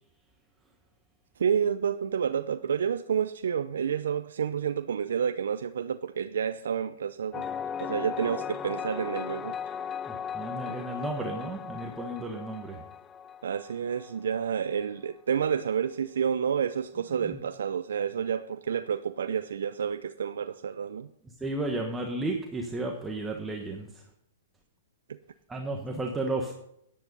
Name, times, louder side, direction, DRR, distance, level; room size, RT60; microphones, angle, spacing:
voice 1, 1.4-7.5 7.8-9.6 13.4-21.1 25.1-25.2, right 7 dB, 80° right, 0.5 m, -29 dB
sound 1, 7.3-14.8, left 7 dB, 20° left, 0.4 m, -37 dB
voice 2, 10.1-12.9 17.2-17.4 21.2-24.1 25.5-26.5, right 2 dB, 10° right, 1.3 m, -33 dB
10.5 x 10.5 x 5.5 m
hypercardioid pair, 135°, 0 cm